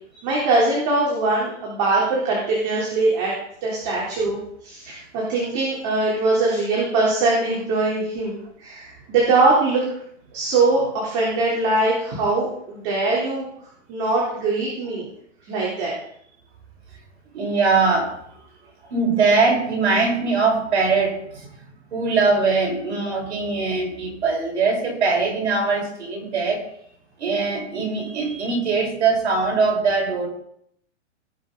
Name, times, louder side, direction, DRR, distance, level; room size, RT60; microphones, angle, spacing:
voice 1, 0.2-3.3 3.6-9.8 10.3-13.5 13.9-15.1 15.5-16.0, right 3 dB, 40° right, -4 dB, 3.5 m, -22 dB
voice 2, 17.3-18.2 18.8-26.6 27.2-30.3, right 4 dB, 70° right, -1 dB, 5.4 m, -21 dB
18.0 x 6.5 x 4.0 m, 0.71 s
hypercardioid pair, 145°, 36 cm